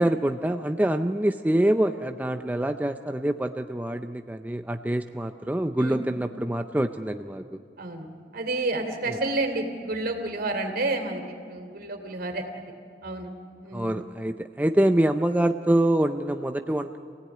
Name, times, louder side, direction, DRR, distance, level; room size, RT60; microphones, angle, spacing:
voice 1, 0.0-7.6 13.7-17.0, right 1 dB, 10° right, 7 dB, 0.5 m, -25 dB
voice 2, 8.3-12.7 13.0-13.3 13.6-14.1, right 2 dB, 60° right, 4 dB, 3.2 m, -30 dB
27.0 x 17.0 x 9.4 m, 2.6 s
head